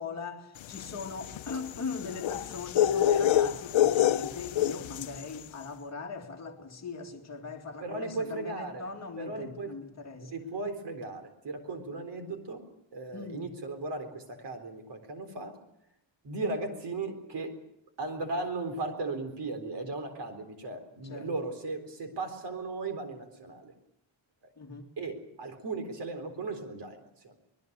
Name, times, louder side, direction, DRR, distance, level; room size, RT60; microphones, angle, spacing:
voice 1, 0.0-10.3 13.1-13.4 21.0-21.3 24.6-24.9, left 4 dB, 35° left, 2.5 m, -40 dB
sound 1, 0.7-5.2, left 11 dB, 75° left, 0.8 m, -26 dB
voice 2, 7.8-8.9 9.2-9.7 10.2-12.6 12.9-15.6 16.2-17.6 18.0-23.7 24.4-24.5 25.0-27.4, right 3 dB, 60° right, 4.1 m, -36 dB
25.0 x 21.0 x 6.8 m
wide cardioid pair, 175°, 46 cm